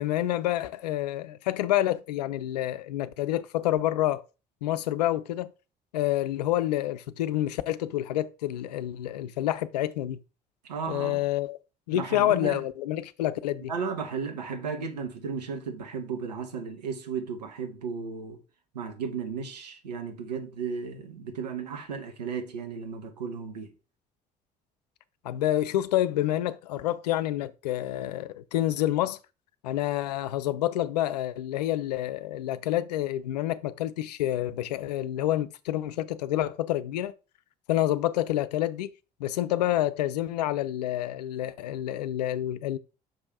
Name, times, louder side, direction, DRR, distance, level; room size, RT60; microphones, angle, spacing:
voice 1, 0.0-4.2 4.6-5.5 5.9-10.2 10.9-11.6 11.9-13.7 25.2-29.2 29.6-37.1 37.7-38.9 39.2-42.8, left 13 dB, 80° left, 0.5 m, -28 dB
voice 2, 10.7-11.3 11.9-12.6 13.7-18.4 18.7-23.7, right 6 dB, 85° right, 1.2 m, -34 dB
6.2 x 5.2 x 4.6 m
figure-of-eight pair, 50°, 21 cm